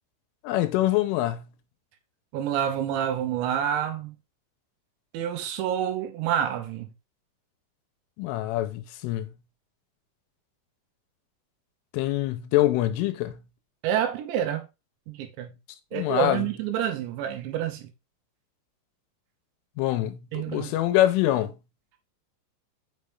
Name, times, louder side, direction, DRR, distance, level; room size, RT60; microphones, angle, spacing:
voice 1, 0.4-1.4 8.2-9.3 11.9-13.3 15.9-16.5 19.8-21.5, left 14 dB, 90° left, 3.2 m, -25 dB
voice 2, 2.3-4.2 5.1-6.9 13.8-14.7 15.1-15.5 15.9-17.9 20.3-20.7, right 9 dB, 75° right, 3.0 m, -28 dB
6.5 x 6.0 x 3.5 m
omnidirectional pair, 5.7 m